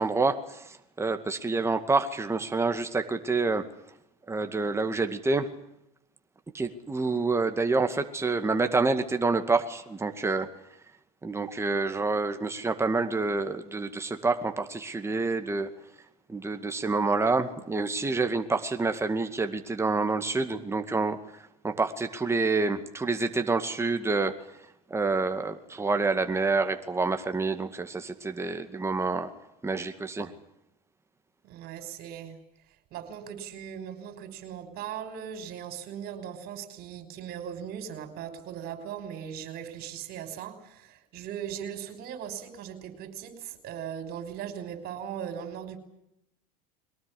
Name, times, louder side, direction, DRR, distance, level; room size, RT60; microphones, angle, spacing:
voice 1, 0.0-3.7 4.3-5.5 6.5-10.5 11.2-15.7 16.3-21.2 21.6-24.3 24.9-29.3 29.6-30.3, right 3 dB, 15° right, 7 dB, 2.2 m, -27 dB
voice 2, 31.4-32.4 32.9-45.8, right 9 dB, 55° right, 8 dB, 5.7 m, -39 dB
22.5 x 18.5 x 10.0 m, 0.84 s
hypercardioid pair, 90°, 19 cm